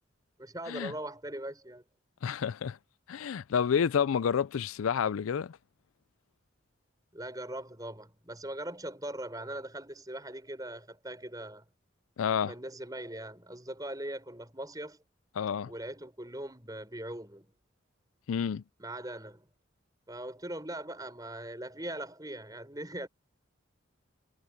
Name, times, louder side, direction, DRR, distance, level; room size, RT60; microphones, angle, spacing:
voice 1, 0.4-1.8 7.1-11.6 12.4-15.0 15.6-17.5 18.8-19.5 20.1-23.1, right 1 dB, 20° right, 6.0 m, -40 dB
voice 2, 2.2-2.8 3.1-5.6 12.2-12.5 15.4-15.7 18.3-18.6, left 7 dB, 90° left, 0.4 m, -29 dB
head